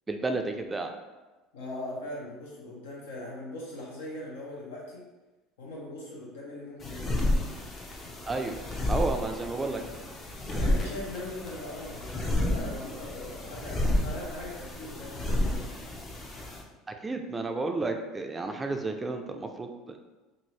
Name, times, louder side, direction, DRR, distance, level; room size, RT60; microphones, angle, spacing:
voice 1, 0.1-0.9 8.3-8.6 8.9-9.8 10.5-10.7 17.0-20.0, right 3 dB, 20° right, 5 dB, 0.3 m, -32 dB
voice 2, 1.5-5.0 5.6-7.2 10.5-15.7, left 1 dB, 90° left, -4 dB, 0.9 m, -40 dB
sound 1, 6.8-16.6, left 1 dB, 35° left, 0.5 m, -31 dB
2.7 x 2.6 x 3.1 m, 1.2 s
supercardioid pair, 90°, 0 cm